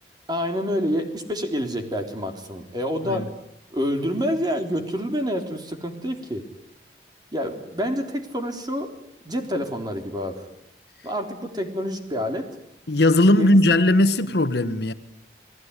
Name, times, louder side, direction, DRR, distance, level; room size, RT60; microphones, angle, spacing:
voice 1, 0.3-3.3 3.7-6.5 7.3-8.9 9.2-10.4 11.0-12.5 13.3-13.6, equal, 25° right, 3.6 m, -27 dB
voice 2, 12.9-14.9, left 1 dB, 65° left, 1.3 m, -18 dB
29.5 x 19.5 x 9.8 m
head